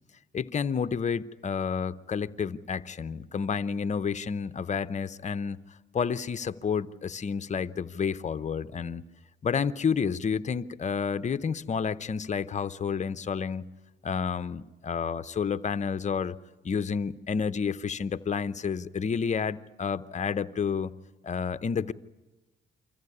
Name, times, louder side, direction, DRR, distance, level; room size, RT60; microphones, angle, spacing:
voice 1, 0.3-5.6 5.9-9.0 9.4-13.7 14.0-16.4 16.6-20.9 21.2-21.9, left 6 dB, 35° left, 0.7 m, -30 dB
24.5 x 15.0 x 9.7 m
cardioid pair, 90°, 20 cm